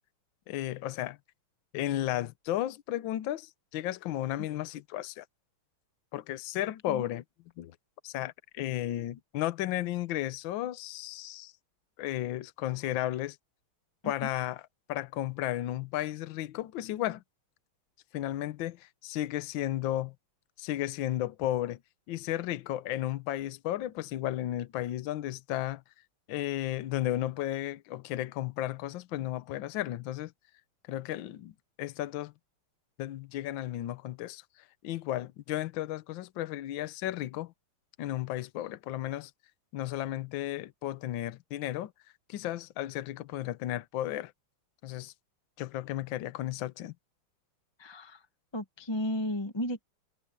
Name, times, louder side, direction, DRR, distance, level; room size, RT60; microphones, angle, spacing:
voice 1, 0.5-1.2 1.7-5.2 6.1-7.2 7.6-7.7 8.0-11.5 12.0-13.4 14.0-14.6 14.9-17.2 18.1-20.1 20.6-21.8 22.1-25.8 26.3-30.3 30.9-32.3 33.0-34.4 34.8-37.5 38.0-39.3 39.7-41.9 42.3-44.3 44.8-45.1 45.6-46.9, left 14 dB, 70° left, 1.4 m, -34 dB
voice 2, 47.8-48.2 48.5-49.8, left 1 dB, 15° left, 0.9 m, -34 dB
omnidirectional pair, 2.4 m